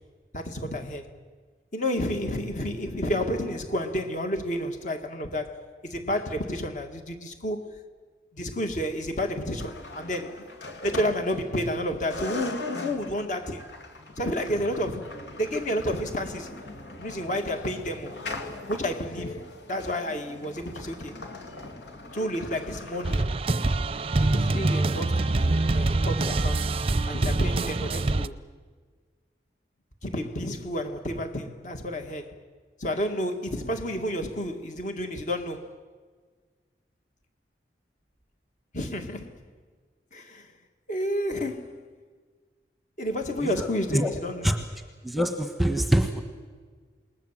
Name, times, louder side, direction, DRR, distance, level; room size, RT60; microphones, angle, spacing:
voice 1, 0.3-1.1 1.7-7.8 8.3-10.5 10.8-13.7 14.2-16.5 17.0-18.1 18.7-21.1 22.1-23.3 24.2-26.7 27.1-28.4 30.0-32.4 32.8-35.8 38.7-39.4 40.1-40.5 40.9-41.8 43.0-44.6, equal, 45° left, 2.0 m, -30 dB
sound 1, 9.6-11.8 12.1-23.2, left 2 dB, 80° left, 2.7 m, -40 dB
sound 2, 23.0-28.3, right 2 dB, 30° right, 0.6 m, -25 dB
voice 2, 45.0-46.2, right 1 dB, ahead, 1.2 m, -24 dB
28.0 x 20.0 x 7.5 m
head